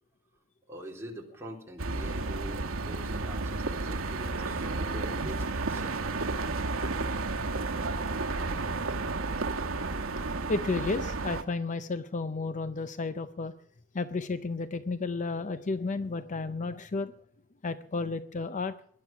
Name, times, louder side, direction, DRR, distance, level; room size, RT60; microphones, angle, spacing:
voice 1, 0.7-6.0, right 1 dB, 15° right, -1 dB, 3.7 m, -44 dB
sound 1, 1.8-11.4, right 3 dB, 85° right, 1.1 m, -32 dB
voice 2, 6.8-7.2 9.8-9.9 10.5-13.5 13.9-17.1 17.6-18.7, left 3 dB, 35° left, 12 dB, 0.6 m, -32 dB
19.5 x 11.5 x 5.9 m, 0.64 s
head